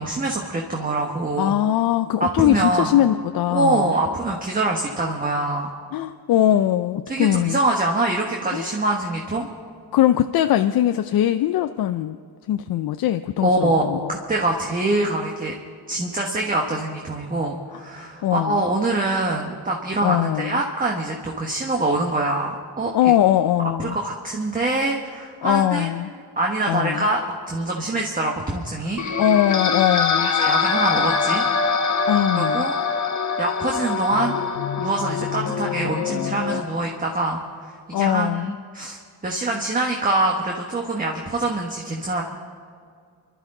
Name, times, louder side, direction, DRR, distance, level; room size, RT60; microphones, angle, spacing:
voice 1, 0.0-1.5 2.2-3.0 3.5-5.7 7.1-9.5 13.4-15.5 15.9-22.9 23.8-25.9 26.4-29.0 30.2-31.4 32.3-32.8 33.4-34.4 34.8-37.4 37.9-38.5 38.7-39.0 39.2-42.2, right 2 dB, 20° right, 0 dB, 1.3 m, -24 dB
voice 2, 1.4-3.9 5.9-7.6 8.5-8.7 9.9-12.2 12.5-14.1 17.7-17.8 18.2-18.6 20.0-20.6 22.9-24.0 25.4-26.1 26.7-27.1 29.2-30.3 32.1-32.7 37.9-38.6, left 12 dB, 60° left, 9 dB, 0.5 m, -21 dB
sound 1, 29.0-36.6, left 5 dB, 45° left, 1.1 m, -23 dB
29.5 x 12.0 x 3.8 m, 2.2 s
cardioid pair, 150°, 41 cm